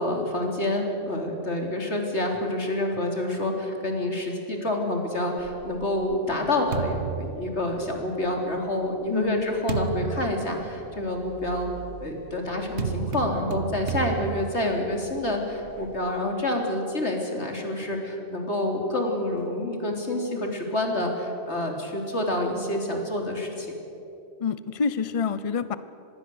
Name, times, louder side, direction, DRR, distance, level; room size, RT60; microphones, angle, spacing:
voice 1, 0.0-11.7 12.0-23.7, left 1 dB, 90° left, 2 dB, 3.9 m, -28 dB
sound 1, 5.4-8.2 8.9-16.0, right 5 dB, 90° right, 1.8 m, -34 dB
voice 2, 9.1-9.5 24.4-25.8, left 6 dB, 35° left, 14 dB, 0.8 m, -27 dB
26.0 x 21.0 x 7.9 m, 2.9 s
omnidirectional pair, 1.1 m